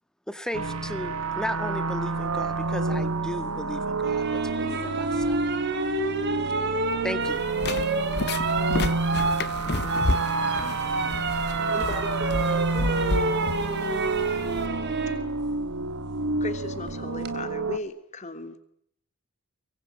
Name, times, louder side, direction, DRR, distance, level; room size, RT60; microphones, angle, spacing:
voice 1, 0.3-5.4 7.0-7.4, equal, 5° left, 11 dB, 1.9 m, -36 dB
sound 1, 0.5-17.8, right 3 dB, 80° right, 1.8 m, -29 dB
sound 2, 4.0-15.2 16.9-17.3, right 3 dB, 55° right, 3.5 m, -29 dB
sound 3, 7.2-14.6, left 2 dB, 50° left, 1.0 m, -32 dB
voice 2, 10.6-11.4 11.7-13.6, right 1 dB, 30° right, -2 dB, 6.0 m, -40 dB
voice 3, 16.4-18.6, left 2 dB, 35° left, 8 dB, 3.1 m, -37 dB
24.0 x 24.0 x 9.3 m, 0.70 s
head